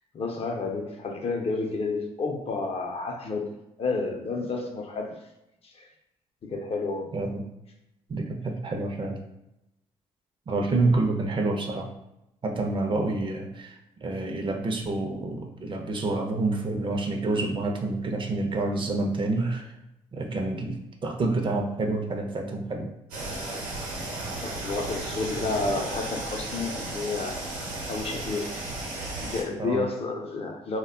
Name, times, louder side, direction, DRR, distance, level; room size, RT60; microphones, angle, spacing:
voice 1, 0.1-3.5 3.8-5.2 5.6-5.9 6.4-7.1 24.4-27.4 27.9-28.6 29.2-30.8, left 3 dB, 45° left, 2 dB, 0.6 m, -30 dB
voice 2, 7.1-7.5 8.1-9.2 10.5-11.9 12.4-19.7 20.1-22.9 29.6-29.9, right 2 dB, 40° right, 3 dB, 0.5 m, -28 dB
sound 1, 23.1-29.4, right 2 dB, 85° right, 0.8 m, -34 dB
2.2 x 2.0 x 3.6 m, 0.89 s
supercardioid pair, 65°, 14 cm